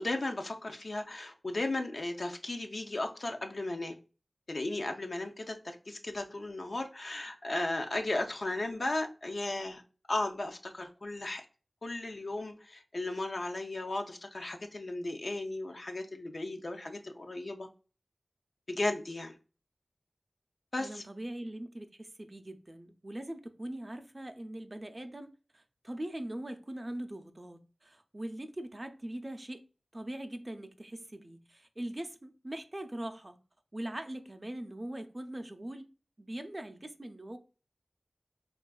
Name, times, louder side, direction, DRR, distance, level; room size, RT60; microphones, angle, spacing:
voice 1, 0.0-4.0 4.5-9.8 10.1-11.5 11.8-17.7 18.7-19.3 20.7-21.0, left 2 dB, 70° left, 0.4 m, -35 dB
voice 2, 20.8-29.6 29.9-33.4 33.7-35.9 36.2-37.4, right 1 dB, 35° right, 0.4 m, -41 dB
3.4 x 2.3 x 2.2 m
wide cardioid pair, 45°, 0 cm